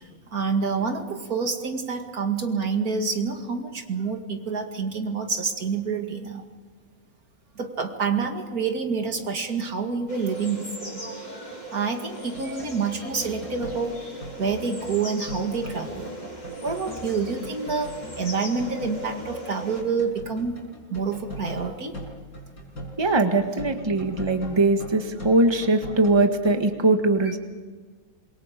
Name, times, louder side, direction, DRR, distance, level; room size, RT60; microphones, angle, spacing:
voice 1, 0.3-6.5 7.6-11.0 11.7-14.0 14.4-16.1 16.6-20.6 20.9-21.9 27.2-27.3, right 5 dB, 80° right, 4 dB, 2.7 m, -27 dB
sound 1, 10.1-19.8, right 1 dB, 25° left, 6.4 m, -38 dB
sound 2, 12.2-26.6, left 1 dB, 80° left, 6.3 m, -41 dB
voice 2, 23.0-27.4, right 2 dB, 20° right, 5 dB, 1.6 m, -21 dB
26.5 x 23.5 x 5.3 m, 1.4 s
omnidirectional pair, 1.5 m